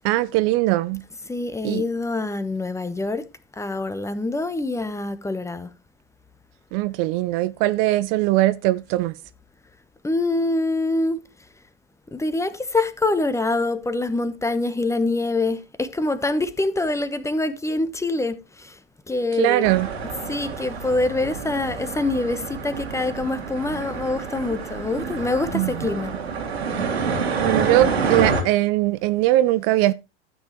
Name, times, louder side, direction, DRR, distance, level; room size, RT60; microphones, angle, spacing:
voice 1, 0.0-1.0 1.6-1.8 6.7-9.1 19.4-19.9 25.5-25.8 27.4-29.9, right 16 dB, 45° right, 0.6 m, -20 dB
voice 2, 1.3-3.3 3.6-5.7 10.0-11.2 12.1-18.7 19.1-19.7 20.0-26.1, left 2 dB, 10° left, 1.0 m, -25 dB
sound 1, 19.6-28.4, right 5 dB, 80° right, 2.1 m, -28 dB
12.5 x 8.1 x 3.0 m
figure-of-eight pair, 80°, 32 cm